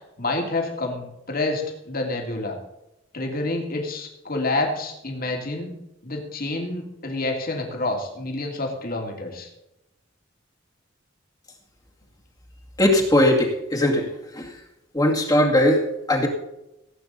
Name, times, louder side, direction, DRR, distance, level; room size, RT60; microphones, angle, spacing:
voice 1, 0.2-2.6 3.1-5.8 6.0-9.5, left 2 dB, 50° left, 2 dB, 2.7 m, -28 dB
voice 2, 12.8-14.1 14.3-14.5 14.9-16.3, left 1 dB, 20° left, 0 dB, 2.2 m, -19 dB
17.5 x 8.8 x 4.0 m, 0.90 s
head